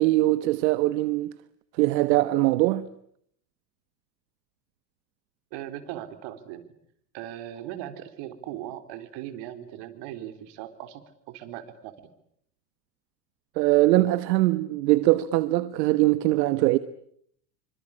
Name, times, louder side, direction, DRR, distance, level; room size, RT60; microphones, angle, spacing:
voice 1, 0.0-1.3 1.8-2.9 13.6-16.8, right 17 dB, 75° right, 1.3 m, -22 dB
voice 2, 5.5-6.7 7.1-11.0 11.3-11.9, right 12 dB, 55° right, 4.0 m, -38 dB
27.0 x 25.0 x 8.7 m
supercardioid pair, 120°, 50 cm